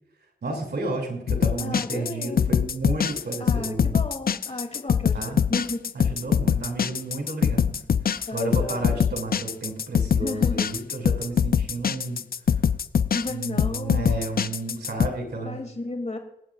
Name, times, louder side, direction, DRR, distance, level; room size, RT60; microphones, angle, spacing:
voice 1, 0.4-4.0 5.1-5.4 5.9-7.8 8.3-12.3 13.3-15.6, right 2 dB, 80° right, 2 dB, 2.9 m, -32 dB
sound 1, 1.3-15.1, left 7 dB, 65° left, 0.5 m, -23 dB
voice 2, 1.6-2.6 3.4-5.8 8.3-9.1 10.2-10.7 13.1-14.2 15.4-16.2, left 2 dB, 40° left, 4 dB, 3.0 m, -34 dB
25.0 x 8.5 x 2.5 m, 0.79 s
cardioid pair, 45°, 17 cm